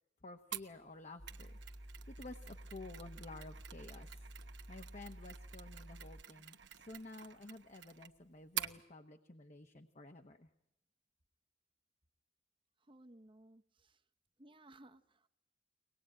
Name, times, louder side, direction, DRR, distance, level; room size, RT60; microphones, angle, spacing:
voice 1, 0.2-1.6 2.1-4.2 4.7-10.5, left 2 dB, 40° left, 6 dB, 1.1 m, -52 dB
Mechanisms, 0.5-8.8, right 11 dB, 75° right, 1.1 m, -49 dB
sound 1, 1.2-6.2, equal, 5° left, 1.3 m, -52 dB
voice 2, 12.9-14.0 14.4-15.3, right 1 dB, 30° right, 10 dB, 1.0 m, -60 dB
24.0 x 19.5 x 8.7 m, 0.86 s
head